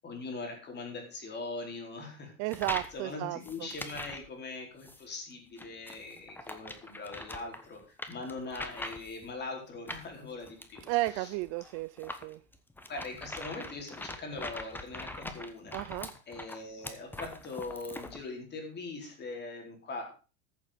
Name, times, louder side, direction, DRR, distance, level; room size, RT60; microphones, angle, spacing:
voice 1, 0.0-2.3 2.9-10.8 11.1-11.3 12.9-16.0 16.3-20.0, left 3 dB, 25° left, 2 dB, 4.2 m, -41 dB
voice 2, 2.4-3.7 10.9-12.4 15.7-16.1, right 18 dB, 40° right, 14 dB, 0.5 m, -33 dB
sound 1, 2.5-3.0 3.4-4.3 4.8-5.0 5.6-9.3 9.9-18.2, left 1 dB, 5° left, 1.2 m, -43 dB
14.5 x 7.3 x 5.1 m, 0.36 s
supercardioid pair, 125°, 40 cm